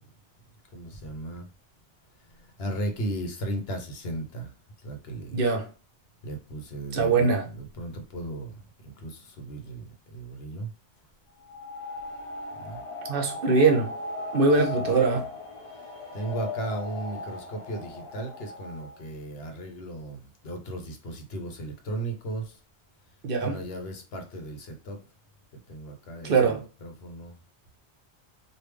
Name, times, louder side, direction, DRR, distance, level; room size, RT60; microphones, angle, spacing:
voice 1, 0.7-1.5 2.4-4.5 4.8-5.4 6.2-10.7 12.6-12.8 14.8-15.2 16.1-22.6 23.4-25.0 25.7-27.4, right 1 dB, 70° left, 1.0 m, -36 dB
voice 2, 5.3-5.7 6.9-7.5 13.1-13.9 14.3-15.3 23.2-23.6 26.2-26.6, right 4 dB, 60° right, 0.8 m, -22 dB
sound 1, 11.4-19.0, left 3 dB, 35° left, 0.6 m, -38 dB
3.3 x 2.4 x 3.2 m
omnidirectional pair, 1.1 m